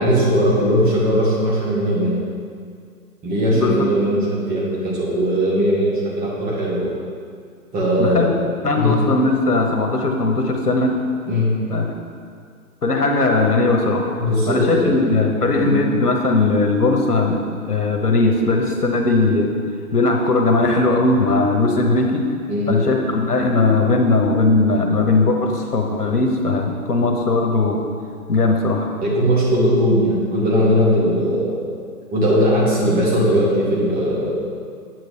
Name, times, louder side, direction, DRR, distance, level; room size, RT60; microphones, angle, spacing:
voice 1, 0.0-2.2 3.2-6.9 7.7-8.3 8.7-9.0 11.3-11.5 14.2-14.9 15.6-15.8 22.5-22.8 29.0-31.6 32.1-34.3, equal, 20° right, -6 dB, 1.9 m, -19 dB
voice 2, 3.5-3.8 8.0-8.3 8.6-11.0 11.7-11.9 12.8-14.1 14.5-19.5 19.9-22.3 22.7-27.8 28.3-28.9, left 3 dB, 90° left, 2 dB, 1.2 m, -18 dB
9.1 x 7.6 x 3.3 m, 2.2 s
figure-of-eight pair, 125°, 45 cm